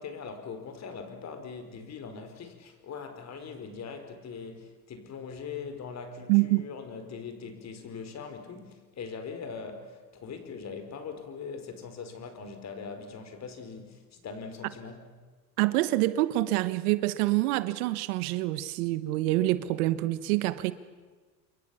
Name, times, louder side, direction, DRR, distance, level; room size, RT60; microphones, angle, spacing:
voice 1, 0.0-15.0, left 5 dB, 35° left, 4.7 m, -41 dB
voice 2, 6.3-6.6 15.6-20.7, right 17 dB, 65° right, 1.4 m, -26 dB
28.0 x 23.0 x 7.1 m
hypercardioid pair, 105°, 48 cm